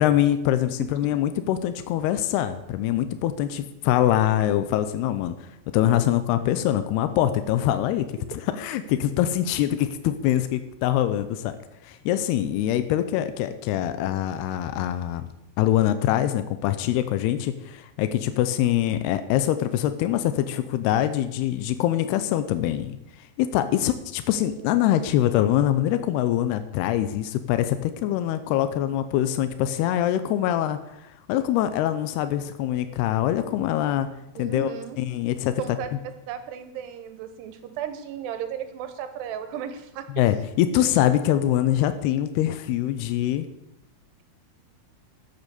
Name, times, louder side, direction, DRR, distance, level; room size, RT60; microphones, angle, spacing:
voice 1, 0.0-5.5 5.7-8.2 8.6-11.6 11.8-15.3 15.6-23.0 23.4-30.8 31.3-34.1 34.4-34.7 35.0-35.8 40.1-43.5, left 12 dB, 85° left, 10 dB, 2.7 m, -24 dB
voice 2, 34.4-35.0 35.6-35.9 36.3-40.0, right 9 dB, 85° right, 9 dB, 3.2 m, -35 dB
12.0 x 8.1 x 6.9 m, 0.86 s
omnidirectional pair, 4.8 m